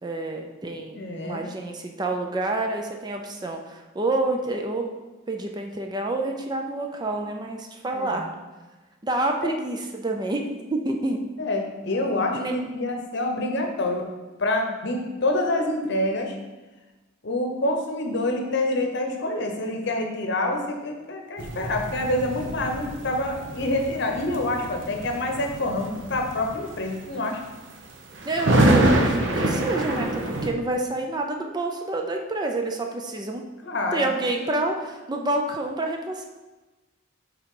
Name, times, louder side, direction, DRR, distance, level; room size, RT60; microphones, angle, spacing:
voice 1, 0.0-4.9 5.3-8.3 9.0-11.2 12.3-12.5 28.2-33.5 33.9-36.3, right 2 dB, 20° right, 3 dB, 0.4 m, -28 dB
voice 2, 0.9-1.4 7.9-8.2 9.4-9.5 11.4-14.0 14.4-16.4 17.2-27.4 33.6-34.1, left 1 dB, 60° left, 3 dB, 0.9 m, -27 dB
sound 1, 21.4-30.5, right 1 dB, 65° right, 0.8 m, -26 dB
5.6 x 3.6 x 4.8 m, 1.2 s
head